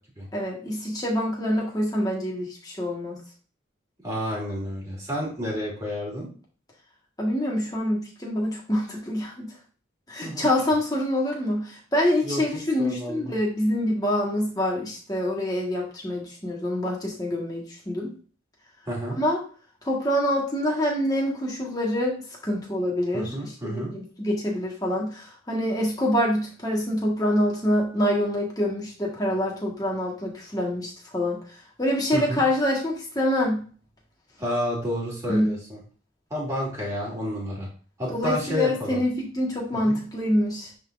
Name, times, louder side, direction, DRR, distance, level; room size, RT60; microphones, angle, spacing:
voice 1, 0.3-3.2 7.2-9.5 10.1-18.1 19.1-19.4 19.8-31.4 31.8-33.6 35.3-35.5 38.1-40.7, left 1 dB, 20° left, -2 dB, 1.5 m, -26 dB
voice 2, 4.0-6.3 10.2-10.5 12.2-12.4 12.8-13.3 18.9-19.2 23.1-23.9 32.1-32.4 34.4-35.8 36.3-37.7 38.0-39.0 39.9-40.0, equal, 15° right, -5 dB, 2.7 m, -30 dB
9.4 x 3.9 x 2.6 m, 0.41 s
head